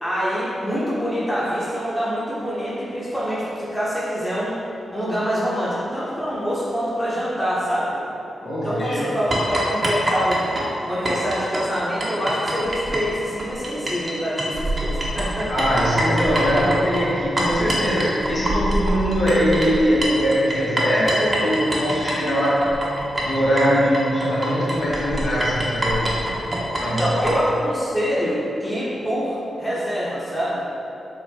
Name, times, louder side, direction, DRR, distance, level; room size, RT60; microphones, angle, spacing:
voice 1, 0.0-4.6 4.9-8.0 8.6-10.5 10.8-15.5 26.8-30.6, equal, 10° left, -8 dB, 0.9 m, -25 dB
voice 2, 8.4-9.1 15.5-22.8 23.2-26.1 26.8-27.2, equal, 60° left, -9 dB, 1.0 m, -21 dB
sound 1, 9.3-14.1 14.4-27.3, right 1 dB, 35° right, 0.7 m, -25 dB
4.2 x 2.1 x 2.8 m, 2.9 s
cardioid pair, 55°, 0 cm